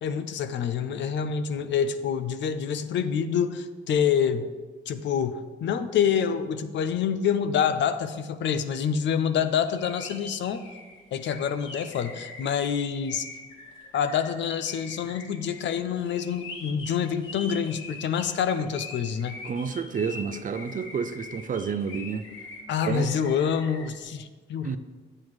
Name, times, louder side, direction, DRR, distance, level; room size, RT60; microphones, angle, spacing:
voice 1, 0.0-4.5 4.9-10.6 11.1-13.3 13.9-19.4 22.7-24.8, left 7 dB, 65° left, 11 dB, 0.6 m, -27 dB
sound 1, 9.6-23.9, left 3 dB, 90° left, 1.5 m, -43 dB
voice 2, 19.4-22.2 22.9-23.1 24.6-24.8, right 6 dB, 40° right, 10 dB, 0.5 m, -30 dB
8.7 x 7.6 x 3.2 m, 1.4 s
cardioid pair, 90°, 20 cm